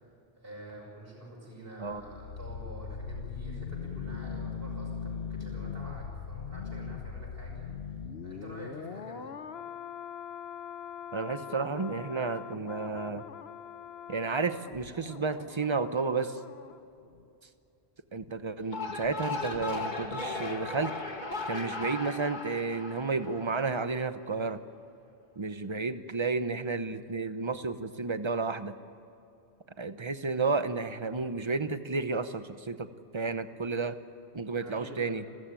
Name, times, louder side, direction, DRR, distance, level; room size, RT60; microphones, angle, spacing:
voice 1, 0.4-7.7 8.2-9.3 34.6-35.3, right 1 dB, 65° right, -2 dB, 6.3 m, -47 dB
sound 1, 1.8-16.8 17.1-17.2, left 6 dB, 80° left, 1.2 m, -41 dB
voice 2, 11.1-13.2 14.1-16.4 18.1-21.0 21.5-24.6 25.4-28.7 29.8-32.9 33.1-34.0 34.3-35.2, right 4 dB, 30° right, 11 dB, 0.9 m, -32 dB
sound 2, 18.6-23.9, left 3 dB, 45° left, 1.9 m, -37 dB
29.5 x 14.0 x 9.0 m, 2.6 s
omnidirectional pair, 1.0 m